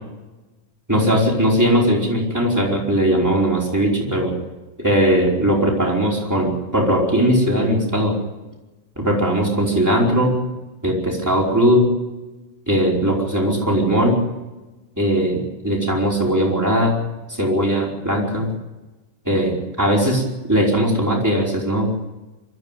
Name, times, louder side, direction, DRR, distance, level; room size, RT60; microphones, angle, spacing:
voice 1, 0.9-4.4 4.8-8.2 9.0-10.4 10.8-11.9 12.7-14.2 15.0-17.0 17.4-18.5 19.2-21.9, equal, 5° right, -3 dB, 4.5 m, -19 dB
24.5 x 13.5 x 9.1 m, 1.1 s
omnidirectional pair, 3.9 m